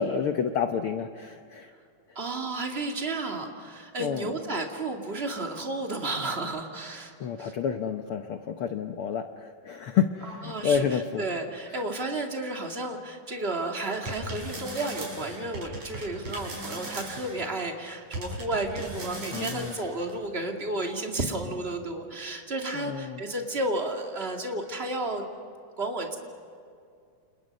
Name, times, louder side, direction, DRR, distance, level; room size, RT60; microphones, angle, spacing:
voice 1, 0.0-1.7 4.0-4.3 7.2-11.2 11.7-11.8 19.3-19.8 22.7-23.2, left 7 dB, 85° left, 6 dB, 1.2 m, -29 dB
voice 2, 2.2-7.1 7.4-7.5 10.4-10.8 11.2-25.3 25.8-26.2, right 2 dB, 20° right, 2 dB, 2.1 m, -32 dB
sound 1, 13.9-17.4 18.1-20.2, right 1 dB, 60° right, 7.0 m, -37 dB
29.5 x 29.0 x 5.4 m, 2.3 s
omnidirectional pair, 3.7 m